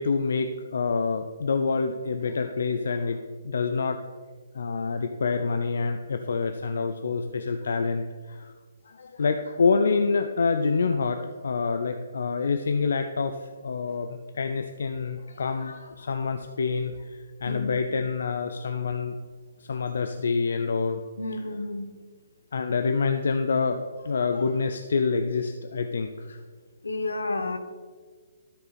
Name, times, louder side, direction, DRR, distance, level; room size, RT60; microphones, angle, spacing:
voice 1, 0.0-3.2 3.4-4.0 4.5-8.5 8.9-19.2 19.6-21.0 22.5-26.4, left 4 dB, 65° left, 7 dB, 0.5 m, -27 dB
voice 2, 17.5-17.8 21.2-21.9 26.8-27.6, left 2 dB, 85° left, 8 dB, 0.9 m, -30 dB
13.0 x 4.5 x 4.1 m, 1.6 s
figure-of-eight pair, 140°, 0 cm